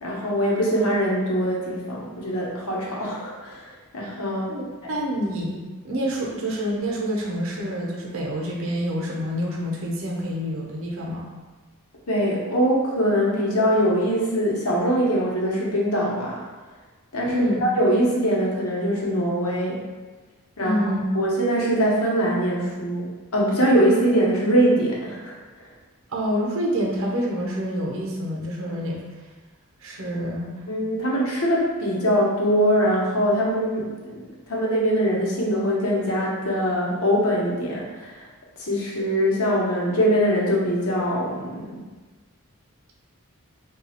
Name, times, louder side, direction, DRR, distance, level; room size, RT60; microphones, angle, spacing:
voice 1, 0.0-4.9 12.1-16.4 17.1-19.9 20.6-20.8 21.1-25.7 30.7-38.2 38.6-41.8, equal, 80° left, -4 dB, 0.9 m, -23 dB
voice 2, 4.5-11.2 17.3-17.6 20.6-21.0 26.1-29.0 29.8-30.5, equal, 65° right, -2 dB, 0.7 m, -27 dB
3.1 x 2.3 x 4.2 m, 1.3 s
head